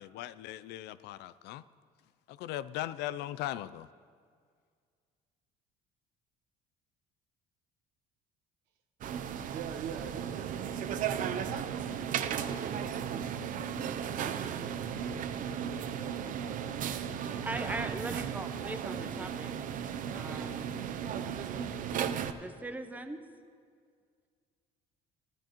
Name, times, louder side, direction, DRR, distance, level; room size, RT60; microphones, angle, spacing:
voice 1, 0.0-1.6 2.3-3.9, left 13 dB, 75° left, 16 dB, 0.4 m, -39 dB
sound 1, 9.0-22.3, right 8 dB, 50° right, 0.6 m, -35 dB
voice 2, 9.5-17.0 18.8-19.3, right 7 dB, 85° right, 6 dB, 1.2 m, -46 dB
voice 3, 17.3-19.5 20.1-20.7 22.4-23.2, right 2 dB, 10° right, 8 dB, 0.7 m, -40 dB
15.5 x 12.5 x 3.0 m, 2.1 s
cardioid pair, 120°, 17 cm